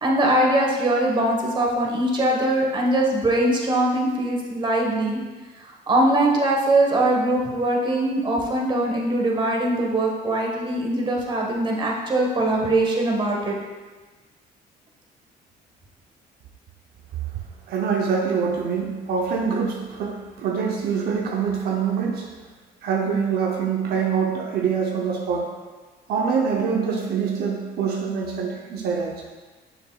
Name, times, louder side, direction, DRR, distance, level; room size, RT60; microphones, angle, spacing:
voice 1, 0.0-5.2 5.6-13.6, right 1 dB, 30° right, -1 dB, 1.2 m, -22 dB
voice 2, 17.7-22.3 22.8-25.5 26.1-29.2, right 6 dB, 70° right, 0 dB, 0.7 m, -25 dB
6.6 x 6.1 x 2.3 m, 1.3 s
cardioid pair, 110°, 17 cm